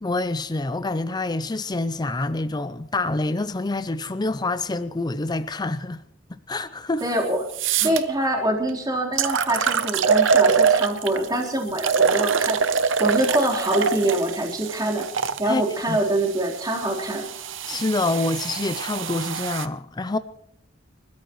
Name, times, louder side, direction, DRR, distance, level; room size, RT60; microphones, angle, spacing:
voice 1, 0.0-6.0 6.3-7.0 7.8-8.0 15.5-15.6 15.9-16.0 17.7-20.2, left 2 dB, 20° left, 0.5 m, -26 dB
voice 2, 7.0-7.4 7.8-12.6 13.0-15.1 15.4-17.2, right 1 dB, 20° right, 3.9 m, -24 dB
sound 1, 7.0-7.1 7.5-8.0 8.7-8.8 9.2-11.3 11.8-15.4 16.2-19.7, right 6 dB, 65° right, 0.8 m, -23 dB
30.0 x 14.0 x 3.1 m
head